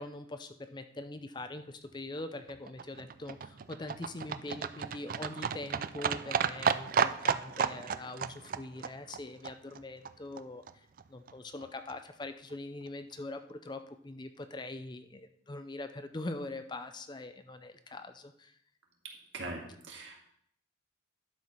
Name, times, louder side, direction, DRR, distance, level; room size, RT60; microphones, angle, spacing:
voice 1, 0.0-10.6 11.1-18.6, left 2 dB, 20° left, 8 dB, 0.5 m, -43 dB
Livestock farm animals working animals, 2.2-10.4 10.7-10.8 11.0-11.1 11.3-11.4 11.6-11.7 11.9-12.0 12.2-12.3 12.5-12.6 12.9-13.0, right 6 dB, 45° right, 0.3 m, -33 dB
voice 2, 19.3-20.2, right 2 dB, 70° right, 1 dB, 1.9 m, -41 dB
11.5 x 4.8 x 5.5 m, 0.67 s
head